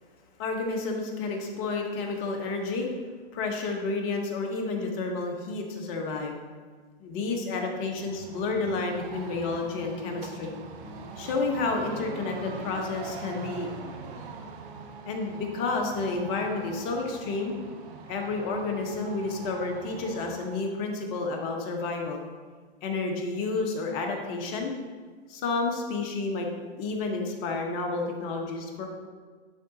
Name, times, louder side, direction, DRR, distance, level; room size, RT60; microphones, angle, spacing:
voice 1, 0.4-2.9 3.3-6.4 7.0-10.5 11.2-13.7 15.0-17.6 18.1-22.2 22.8-24.8 25.3-28.9, left 3 dB, 40° left, 2 dB, 1.2 m, -30 dB
sound 1, 7.9-20.7, right 4 dB, 50° right, 0.9 m, -42 dB
10.5 x 3.9 x 2.8 m, 1.5 s
hypercardioid pair, 115°, 33 cm